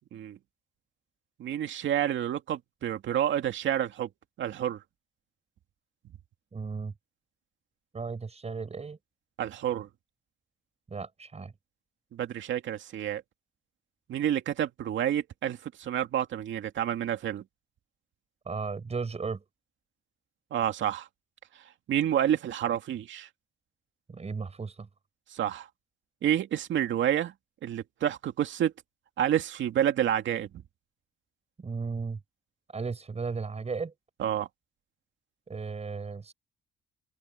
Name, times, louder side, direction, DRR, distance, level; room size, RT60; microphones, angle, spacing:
voice 1, 1.4-4.1 4.4-4.8 9.4-9.9 12.1-13.2 14.1-17.4 20.5-21.1 21.9-23.3 25.3-25.7 26.2-27.3 27.6-28.7 29.2-30.5 34.2-34.5, right 10 dB, 70° right, 2.3 m, -29 dB
voice 2, 6.5-6.9 7.9-9.0 10.9-11.5 18.5-19.4 24.1-24.9 31.6-32.2 32.7-33.9 35.5-36.3, right 4 dB, 30° right, 6.1 m, -35 dB
cardioid pair, 90°, 20 cm